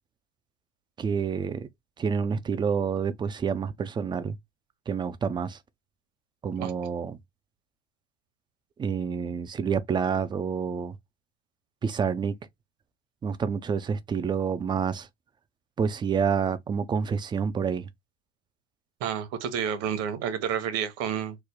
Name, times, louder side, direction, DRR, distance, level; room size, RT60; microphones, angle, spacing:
voice 1, 1.0-1.7 2.0-4.4 4.9-5.6 6.4-7.2 8.8-10.9 11.8-12.3 13.2-15.1 15.8-17.9, right 6 dB, 15° right, 0.4 m, -28 dB
voice 2, 19.0-21.4, right 8 dB, 50° right, 0.9 m, -30 dB
3.2 x 2.1 x 3.6 m
hypercardioid pair, 95°, 32 cm